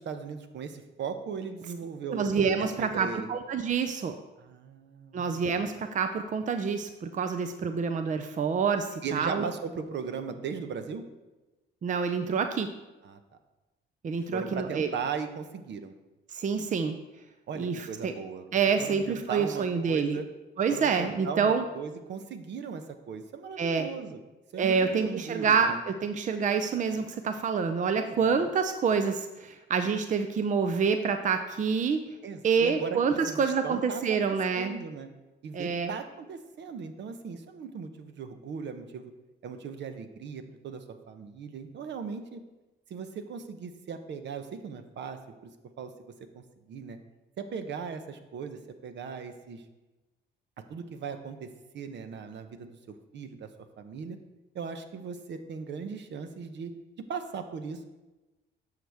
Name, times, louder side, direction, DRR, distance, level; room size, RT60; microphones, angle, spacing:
voice 1, 0.0-2.2 2.6-3.3 4.4-5.2 9.0-11.1 13.0-13.2 14.2-15.9 17.5-18.5 18.8-20.3 20.7-24.2 24.5-25.8 28.0-28.5 32.2-35.1 35.4-39.1 39.4-42.4 42.9-45.5 45.8-45.9 46.3-47.0 47.4-49.6 50.7-51.5 51.7-52.8 53.1-53.5 53.8-54.2 54.5-56.7 57.1-57.9, right 6 dB, 65° right, 8 dB, 0.9 m, -38 dB
voice 2, 2.1-4.1 5.1-9.4 11.8-12.7 14.0-14.9 16.3-16.9 17.6-18.1 18.5-20.2 20.6-21.6 23.6-23.9 24.6-32.0 32.4-34.7 35.5-35.9, right 5 dB, 40° right, 7 dB, 0.5 m, -27 dB
10.5 x 6.6 x 3.5 m, 1.1 s
cardioid pair, 90°, 20 cm